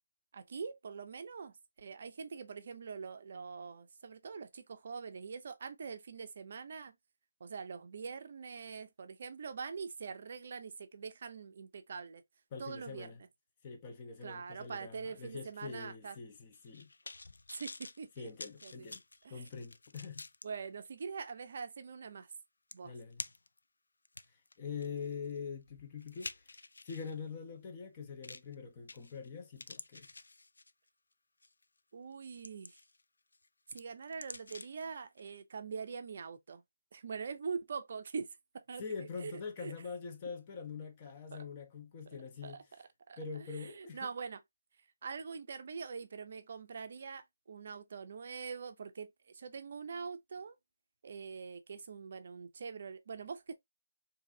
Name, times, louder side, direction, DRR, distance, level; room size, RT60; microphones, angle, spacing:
voice 1, 0.3-7.0 7.4-12.2 12.6-13.1 14.2-16.2 17.5-18.9 19.2-19.5 20.4-22.3 22.7-22.9 31.9-32.8 33.7-36.6 36.9-39.3 39.6-39.7 41.3-41.4 42.1-42.2 42.4-44.4 45.0-50.6 51.0-53.5, right 5 dB, 50° right, 0.5 m, -44 dB
voice 2, 12.5-13.2 13.6-16.9 18.2-19.0 19.3-20.2 22.8-23.2 24.6-26.4 26.8-30.1 38.8-42.6 43.2-44.1, left 5 dB, 25° left, 0.8 m, -44 dB
sound 1, 16.5-20.5 21.0-21.1 22.3-22.4 22.7-23.6 24.0-27.1 28.2-28.5 28.9-29.3 29.6-30.9 31.4-31.6 32.1-33.0 33.3-34.9 35.2-35.3, left 3 dB, 75° left, 0.3 m, -49 dB
3.9 x 2.7 x 2.6 m
figure-of-eight pair, 155°, 0 cm